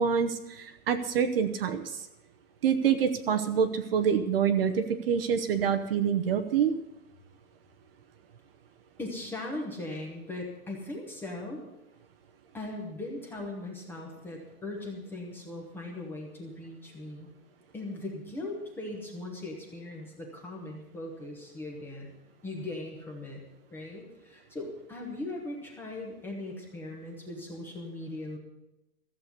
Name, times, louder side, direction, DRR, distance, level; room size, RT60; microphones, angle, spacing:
voice 1, 0.0-2.0 2.6-6.7, right 7 dB, 40° right, 7 dB, 0.9 m, -26 dB
voice 2, 9.0-11.6 12.5-17.3 17.7-22.1 22.4-23.4 23.7-28.4, left 2 dB, 5° left, -1 dB, 1.0 m, -39 dB
14.5 x 7.7 x 8.2 m, 0.94 s
supercardioid pair, 180°, 44 cm